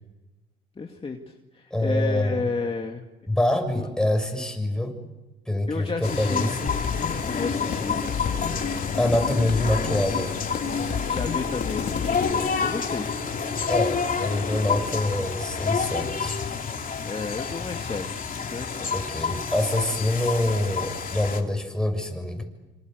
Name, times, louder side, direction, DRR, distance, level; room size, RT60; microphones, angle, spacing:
voice 1, 0.8-3.0 5.7-6.5 7.2-8.0 11.1-13.1 17.0-18.9, left 4 dB, 30° left, 2 dB, 2.3 m, -32 dB
voice 2, 1.7-2.5 3.3-5.0 5.5-6.7 9.0-10.3 10.8-11.1 13.7-16.4 18.9-22.4, left 1 dB, 5° left, 4 dB, 6.8 m, -25 dB
sound 1, 6.0-21.4, left 5 dB, 45° left, 3.2 m, -29 dB
sound 2, 6.7-12.3, left 7 dB, 60° left, 3.2 m, -31 dB
27.0 x 26.5 x 8.1 m, 1.1 s
cardioid pair, 90°, 20 cm